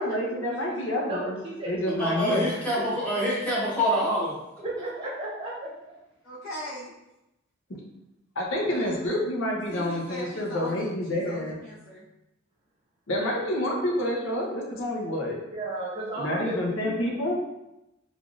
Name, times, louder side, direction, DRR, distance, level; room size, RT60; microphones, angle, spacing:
voice 1, 0.0-1.4 1.7-2.5 8.4-11.6 13.1-15.4 16.1-17.3, left 1 dB, 70° left, -2 dB, 0.7 m, -28 dB
voice 2, 1.1-2.4 4.6-5.7 15.5-17.2, right 1 dB, 25° right, -5 dB, 0.9 m, -34 dB
voice 3, 2.0-4.3, equal, 10° left, -9 dB, 1.0 m, -26 dB
voice 4, 6.2-7.0 8.7-9.1 9.7-12.0, equal, 40° left, -12 dB, 1.1 m, -39 dB
3.4 x 2.5 x 2.4 m, 0.90 s
head